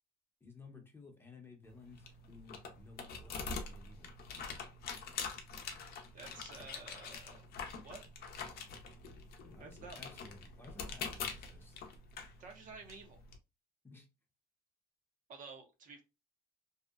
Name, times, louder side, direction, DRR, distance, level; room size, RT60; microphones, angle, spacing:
voice 1, 0.4-4.1 9.5-11.8 13.8-14.1, left 4 dB, 15° left, 2 dB, 0.7 m, -56 dB
sound 1, 1.6-13.4, left 5 dB, 65° left, 0.6 m, -45 dB
voice 2, 6.1-7.5 7.8-8.0 9.6-10.0 12.4-13.2 15.3-16.0, right 4 dB, 50° right, 3 dB, 0.7 m, -51 dB
2.7 x 2.1 x 2.3 m, 0.25 s
cardioid pair, 110°, 17 cm